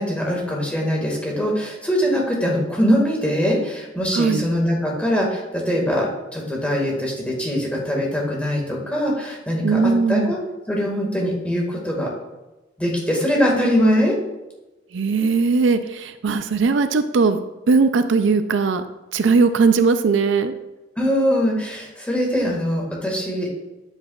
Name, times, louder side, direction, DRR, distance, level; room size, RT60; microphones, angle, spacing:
voice 1, 0.0-10.4 10.7-12.1 12.8-14.2 21.0-23.5, equal, 5° left, -2 dB, 1.8 m, -22 dB
voice 2, 4.1-4.4 9.6-10.3 14.9-17.4 17.7-18.8 19.1-20.5, right 4 dB, 70° right, 10 dB, 0.4 m, -19 dB
9.3 x 8.0 x 2.4 m, 1.0 s
head